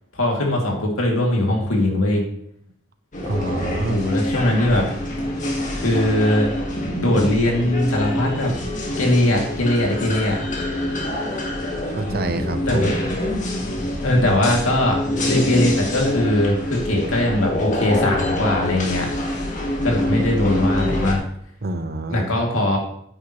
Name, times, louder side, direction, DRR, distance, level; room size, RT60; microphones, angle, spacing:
voice 1, 0.1-2.2 3.9-4.9 5.8-6.5 7.0-8.5 9.0-10.4 12.7-12.9 14.0-19.1 19.8-21.2 22.1-22.8, left 1 dB, 80° left, 0 dB, 2.8 m, -20 dB
sound 1, 3.1-21.1, left 1 dB, 40° left, 2.0 m, -25 dB
voice 2, 3.3-4.0 11.9-12.8 21.6-22.3, right 2 dB, 50° right, 9 dB, 0.9 m, -27 dB
9.9 x 9.1 x 3.2 m, 0.69 s
head